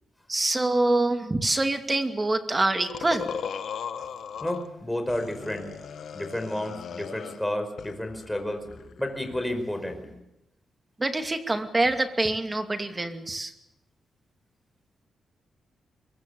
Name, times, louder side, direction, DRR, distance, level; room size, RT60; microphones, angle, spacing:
voice 1, 0.3-3.3 11.0-13.5, right 2 dB, 20° right, 6 dB, 2.5 m, -25 dB
sound 1, 2.9-4.7 5.1-7.5 7.8-9.4, left 7 dB, 70° left, 1.6 m, -37 dB
voice 2, 4.4-5.7 6.1-10.2, left 1 dB, 5° left, 6 dB, 5.1 m, -31 dB
23.5 x 23.5 x 7.1 m, 0.89 s
cardioid pair, 110°, 0 cm